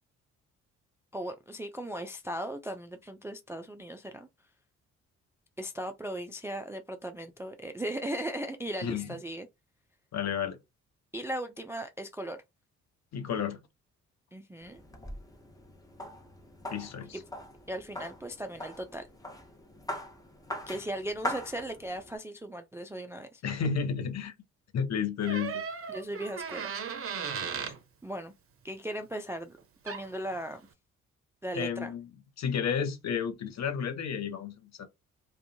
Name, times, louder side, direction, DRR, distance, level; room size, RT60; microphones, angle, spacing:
voice 1, 1.1-4.3 5.6-9.5 11.1-12.4 14.3-14.8 17.1-17.2 17.7-19.1 20.7-23.4 25.9-26.7 28.0-28.3 28.6-29.5 29.8-30.6 31.4-31.9, right 1 dB, 10° right, 0.3 m, -37 dB
voice 2, 8.8-9.2 10.1-10.6 13.1-13.6 16.7-17.2 23.4-24.3 24.7-25.6 31.5-32.1 32.4-34.9, left 7 dB, 45° left, 0.7 m, -32 dB
sound 1, 14.6-22.2, left 1 dB, 10° left, 0.8 m, -41 dB
Door, 25.2-27.8 29.6-29.7 29.9-30.2, right 6 dB, 35° right, 0.7 m, -36 dB
2.4 x 2.2 x 2.6 m
hypercardioid pair, 45°, 37 cm